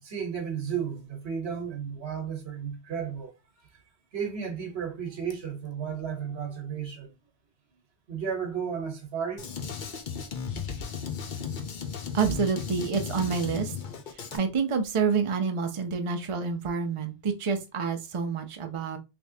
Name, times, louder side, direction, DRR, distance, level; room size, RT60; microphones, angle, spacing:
voice 1, 0.0-3.3 4.1-7.1 8.1-9.5 11.3-11.5, right 7 dB, 70° right, 1.2 m, -33 dB
Drum kit, 9.4-14.4, left 6 dB, 50° left, 0.7 m, -35 dB
voice 2, 12.1-13.7 14.3-19.0, right 5 dB, 40° right, 0.5 m, -28 dB
3.3 x 3.0 x 2.7 m
omnidirectional pair, 1.1 m